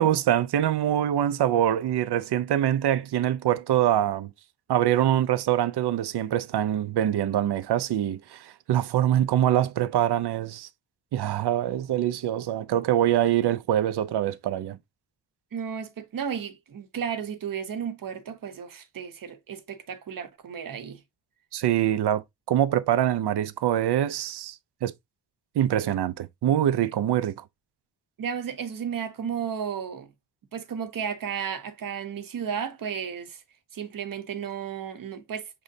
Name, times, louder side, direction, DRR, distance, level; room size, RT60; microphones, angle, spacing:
voice 1, 0.0-4.3 4.7-10.7 11.1-14.8 21.5-24.9 25.6-27.4, right 11 dB, 80° right, 0.5 m, -24 dB
voice 2, 15.5-21.0 28.2-30.1 30.5-33.4 33.7-35.5, right 7 dB, 55° right, 0.8 m, -33 dB
6.3 x 3.1 x 2.6 m
wide cardioid pair, 175°, 39 cm